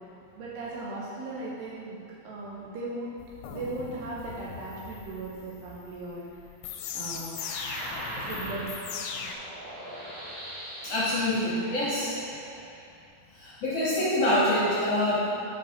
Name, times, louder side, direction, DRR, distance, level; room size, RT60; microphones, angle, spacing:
voice 1, 0.4-2.0 2.2-3.2 3.5-6.2 6.9-7.4 8.2-8.9 15.3-15.4, right 2 dB, 90° right, -5 dB, 2.4 m, -37 dB
sound 1, 3.2-9.3, left 7 dB, 90° left, 3.4 m, -39 dB
sound 2, 7.4-13.0, right 1 dB, 60° right, 2.9 m, -41 dB
voice 2, 10.8-12.1 13.3-15.3, left 1 dB, 70° left, -10 dB, 1.7 m, -26 dB
13.0 x 5.4 x 2.9 m, 2.5 s
omnidirectional pair, 6.0 m